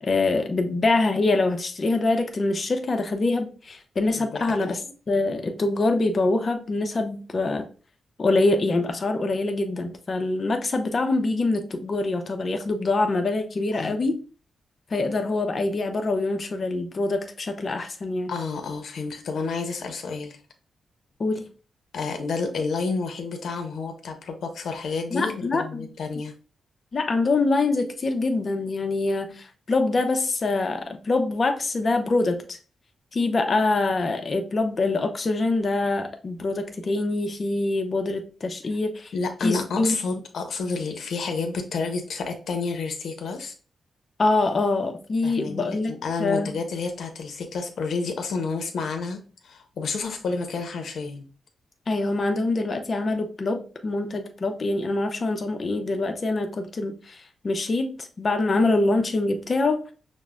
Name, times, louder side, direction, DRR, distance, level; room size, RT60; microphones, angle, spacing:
voice 1, 0.0-4.8 5.1-7.7 8.2-14.2 14.9-18.3 21.2-21.5 25.1-25.9 26.9-32.6 33.1-39.1 39.4-39.9 44.2-45.9 46.2-46.5 51.9-59.9, left 2 dB, 45° left, 0.6 m, -24 dB
voice 2, 4.2-4.8 13.7-14.0 18.3-20.4 21.9-26.3 39.1-43.5 45.2-51.3, left 4 dB, 75° left, 0.8 m, -30 dB
6.2 x 2.1 x 2.3 m
cardioid pair, 90°, 0 cm